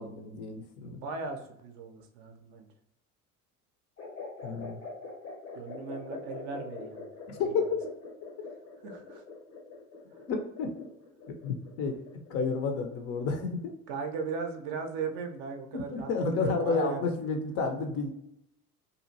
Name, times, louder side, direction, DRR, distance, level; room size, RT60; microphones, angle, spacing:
voice 1, 0.0-1.0 4.4-4.8 7.3-7.8 10.3-10.7 11.4-12.0 12.3-13.6 15.9-18.1, left 4 dB, 35° left, 4 dB, 0.4 m, -30 dB
voice 2, 0.8-2.7 5.5-7.1 7.4-7.6 8.8-9.2 13.9-17.1, right 5 dB, 45° right, 4 dB, 0.5 m, -37 dB
sound 1, 4.0-13.6, left 3 dB, 85° left, 0.9 m, -44 dB
2.7 x 2.4 x 2.6 m, 0.79 s
figure-of-eight pair, 65°, 44 cm